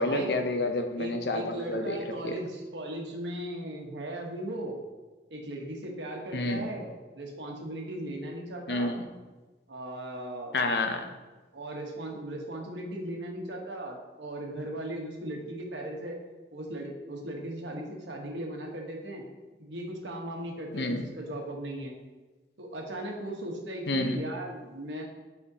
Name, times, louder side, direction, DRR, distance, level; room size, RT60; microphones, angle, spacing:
voice 1, 0.0-2.0 2.2-2.3 6.3-6.6 8.7-9.1 10.5-11.1 20.7-21.0 23.9-24.2, left 2 dB, 65° left, 6 dB, 0.6 m, -29 dB
voice 2, 1.0-4.7 5.3-6.9 7.1-8.9 9.7-10.6 11.5-16.2 16.5-19.2 19.6-21.9 22.6-25.0, right 1 dB, 85° right, 0 dB, 1.2 m, -37 dB
8.2 x 4.3 x 2.8 m, 1.2 s
head